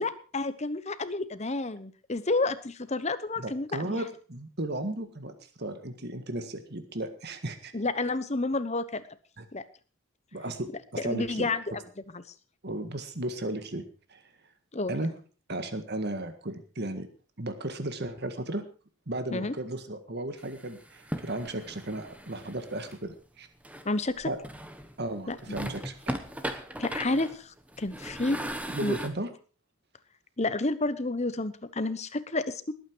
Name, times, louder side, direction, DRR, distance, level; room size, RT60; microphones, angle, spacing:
voice 1, 0.0-4.0 7.7-9.0 9.5-9.6 11.0-11.6 12.1-12.2 14.7-14.9 19.3-19.5 23.8-24.3 25.3-25.4 26.8-28.4 28.8-29.0 30.4-32.7, left 2 dB, 30° left, 13 dB, 1.0 m, -30 dB
voice 2, 3.4-7.7 9.4-9.5 10.3-11.5 12.6-13.8 14.1-14.2 14.9-15.1 15.5-17.1 17.4-18.6 19.1-23.5 24.2-24.4 25.0-26.2 28.7-29.3, right 1 dB, 50° right, 8 dB, 1.8 m, -35 dB
sound 1, 20.4-23.0 23.6-24.9 25.3-29.1, right 1 dB, 5° right, 1.2 m, -38 dB
20.0 x 9.1 x 4.6 m, 0.37 s
head